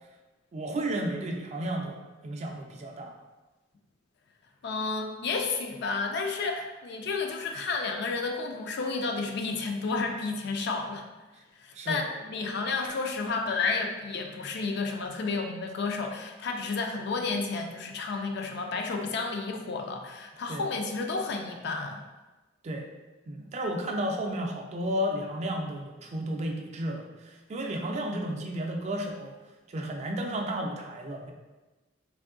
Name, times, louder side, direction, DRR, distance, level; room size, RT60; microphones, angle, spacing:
voice 1, 0.5-3.1 11.7-12.0 20.5-20.6 22.6-22.9 23.3-29.3 29.7-31.3, right 1 dB, 35° right, 2 dB, 0.3 m, -33 dB
voice 2, 4.6-11.0 11.6-22.0, left 4 dB, 60° left, 3 dB, 0.4 m, -31 dB
3.4 x 2.6 x 2.5 m, 1.2 s
head